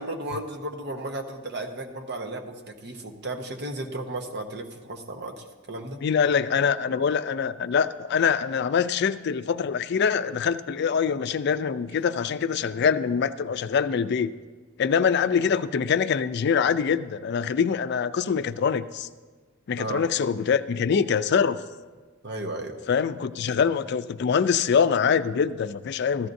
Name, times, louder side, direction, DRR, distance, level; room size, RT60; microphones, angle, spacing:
voice 1, 0.0-6.0 19.8-20.0 22.2-22.8, right 1 dB, 60° right, 3 dB, 1.0 m, -34 dB
voice 2, 6.0-14.3 14.8-19.1 19.7-21.6 22.9-26.3, left 6 dB, 55° left, 12 dB, 0.4 m, -24 dB
15.0 x 12.5 x 2.6 m, 1.4 s
head